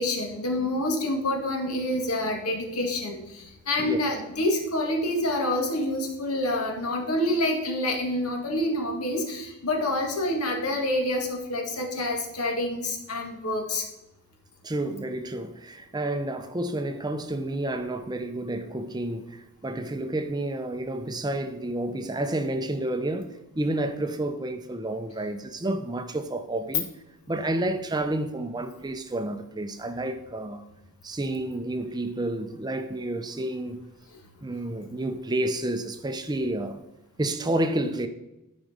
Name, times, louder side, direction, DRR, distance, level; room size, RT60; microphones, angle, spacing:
voice 1, 0.0-13.8 34.1-34.2, left 1 dB, 80° left, 2.1 m, -27 dB
voice 2, 14.6-26.9 27.3-30.6 31.0-33.8 34.4-36.8 37.2-38.1, right 1 dB, 20° right, 0.6 m, -30 dB
12.5 x 5.2 x 5.1 m
head